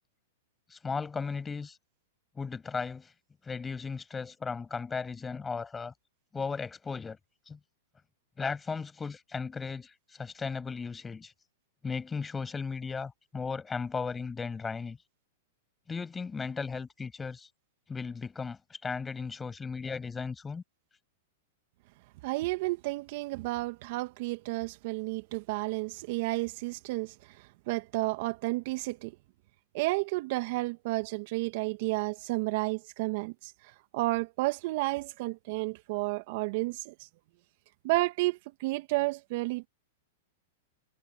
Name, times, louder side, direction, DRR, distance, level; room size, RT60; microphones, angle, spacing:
voice 1, 0.7-1.8 2.3-3.1 3.4-5.9 6.3-7.2 7.5-7.6 8.4-11.3 11.8-15.0 15.9-17.5 17.9-20.6, left 5 dB, 15° left, 6.7 m, -36 dB
voice 2, 22.2-27.1 27.7-29.1 29.7-33.5 33.9-37.1 37.8-39.7, right 22 dB, 55° right, 1.9 m, -31 dB
hypercardioid pair, 110°, 0 cm